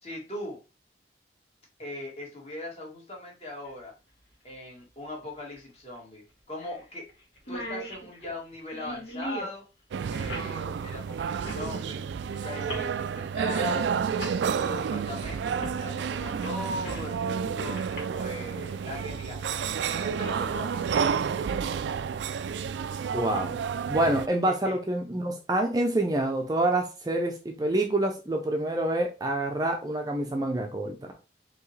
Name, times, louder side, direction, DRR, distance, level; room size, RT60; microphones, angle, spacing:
voice 1, 0.0-0.6 1.8-3.9 4.4-7.0 7.5-9.6 10.1-12.0 12.3-13.8 14.1-17.8 18.1-22.0 24.4-24.8, left 1 dB, 35° left, -2 dB, 1.6 m, -40 dB
sound 1, 3.6-3.7 5.5-5.6 6.0-6.1 6.6-6.8 7.1-7.2 7.4-9.6 10.3-10.5 11.4-11.7 12.6-12.9 13.7-13.8 14.2-14.4 15.6-15.8 16.2-17.1 17.8-18.0, equal, 75° left, 2.1 m, -38 dB
sound 2, 9.9-24.3, right 6 dB, 80° right, 0.3 m, -30 dB
voice 2, 23.1-23.6 23.9-31.0, right 1 dB, 20° right, 3 dB, 0.5 m, -27 dB
4.7 x 2.9 x 3.2 m, 0.30 s
head